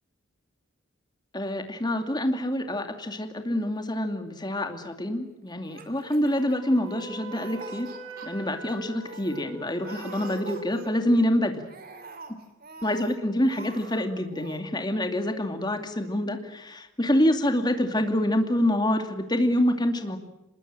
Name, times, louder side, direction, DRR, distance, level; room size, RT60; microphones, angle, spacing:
voice 1, 1.3-7.9 8.2-11.6 12.8-20.2, left 1 dB, 20° left, 6 dB, 2.5 m, -26 dB
Laughter, 5.6-7.0 7.3-8.3 8.7-8.8 9.0-9.4 9.8-11.2 11.6-13.1 13.4-14.0 14.3-14.6, right 4 dB, 45° right, 3.4 m, -45 dB
Wind instrument woodwind instrument, 6.3-11.0, right 2 dB, 75° right, 6.4 m, -43 dB
25.5 x 21.0 x 9.0 m, 0.93 s
head